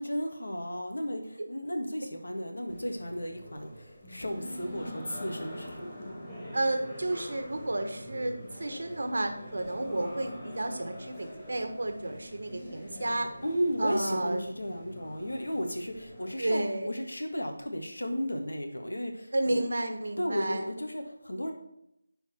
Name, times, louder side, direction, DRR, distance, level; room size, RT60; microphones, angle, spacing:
voice 1, 0.0-6.1 13.4-19.6 20.2-21.5, equal, 75° left, 4 dB, 1.8 m, -34 dB
sound 1, 2.7-16.6, equal, 10° left, 3.2 m, -44 dB
voice 2, 6.5-13.3 13.8-14.4 16.4-16.9 19.3-20.7, right 1 dB, 65° right, 6 dB, 1.4 m, -31 dB
10.5 x 4.5 x 4.4 m, 0.80 s
figure-of-eight pair, 165°, 0 cm